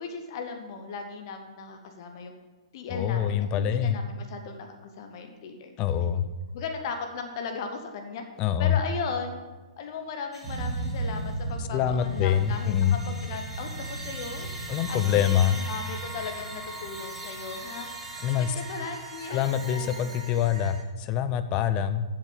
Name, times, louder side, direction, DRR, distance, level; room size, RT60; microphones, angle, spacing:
voice 1, 0.0-2.3 2.7-6.1 6.5-8.2 8.6-9.4 9.8-14.5 14.9-17.9 18.3-20.1, left 5 dB, 50° left, 5 dB, 1.4 m, -37 dB
voice 2, 2.9-4.0 5.8-6.3 8.4-8.8 11.6-13.0 14.7-15.6 18.2-18.5 19.3-22.0, left 9 dB, 30° left, 10 dB, 0.7 m, -25 dB
sound 1, 10.3-11.5 11.9-20.8, right 2 dB, 10° right, 1.7 m, -41 dB
sound 2, 10.4-19.3, right 2 dB, 40° right, 2.9 m, -37 dB
7.9 x 7.3 x 7.1 m, 1.3 s
hypercardioid pair, 120°, 3 cm